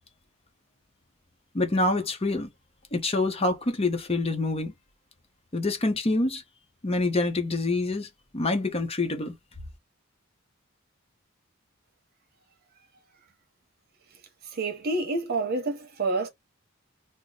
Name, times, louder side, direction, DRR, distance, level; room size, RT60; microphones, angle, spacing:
voice 1, 1.5-2.5 2.9-4.7 5.5-6.4 6.8-8.1 8.3-9.3, left 2 dB, 30° left, 0.8 m, -26 dB
voice 2, 14.4-16.3, right 3 dB, 50° right, 1.0 m, -28 dB
3.0 x 2.1 x 3.8 m
head